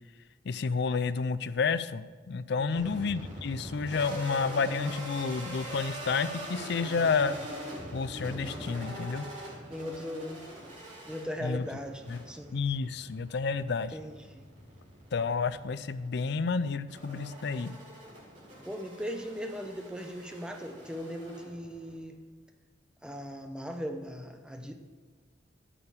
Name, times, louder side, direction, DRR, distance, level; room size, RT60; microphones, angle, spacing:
voice 1, 0.5-7.4 7.9-9.3 11.4-11.6 12.1-12.2 12.5-14.0 15.1-17.8, left 5 dB, 60° left, 15 dB, 0.4 m, -30 dB
voice 2, 2.6-3.0 6.8-7.1 9.7-10.4 11.0-12.6 13.9-14.5 18.7-22.2 23.0-24.7, equal, 5° right, 5 dB, 0.8 m, -39 dB
sound 1, 2.8-22.0, right 1 dB, 40° right, 3.6 m, -43 dB
10.0 x 6.8 x 7.1 m, 1.4 s
head